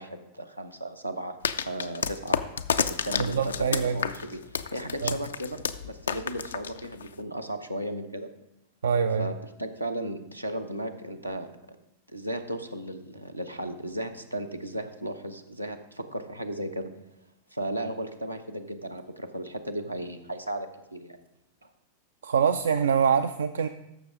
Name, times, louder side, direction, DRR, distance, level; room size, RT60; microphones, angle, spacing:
voice 1, 0.0-1.4 1.6-2.4 2.9-8.3 9.2-9.3 9.6-11.5 12.1-16.9 17.5-21.2 21.6-21.7, right 1 dB, 90° right, 5 dB, 0.7 m, -35 dB
sound 1, 1.4-7.2, left 7 dB, 70° left, 0.4 m, -30 dB
voice 2, 3.2-4.0 5.0-5.2 8.8-9.3 22.2-23.7, right 6 dB, 70° right, 9 dB, 0.3 m, -24 dB
14.0 x 6.1 x 3.7 m, 0.87 s
figure-of-eight pair, 90°, 0 cm